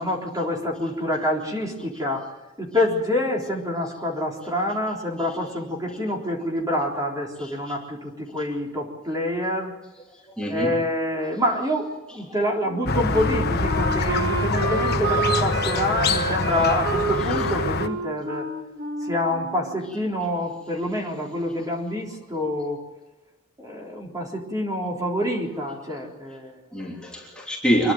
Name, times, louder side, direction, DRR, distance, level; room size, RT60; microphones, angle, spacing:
voice 1, 0.0-2.3 2.6-9.7 10.5-11.9 12.1-18.5 19.0-22.8 23.6-26.6, left 1 dB, 20° right, -1 dB, 3.8 m, -27 dB
voice 2, 7.4-7.7 10.4-10.7 26.7-27.9, equal, 5° left, -3 dB, 3.1 m, -25 dB
Wind instrument woodwind instrument, 12.6-20.2, right 3 dB, 60° right, 2.1 m, -29 dB
Squeak, 12.9-17.9, left 3 dB, 55° left, 1.2 m, -25 dB
26.5 x 11.5 x 9.5 m, 1.0 s
head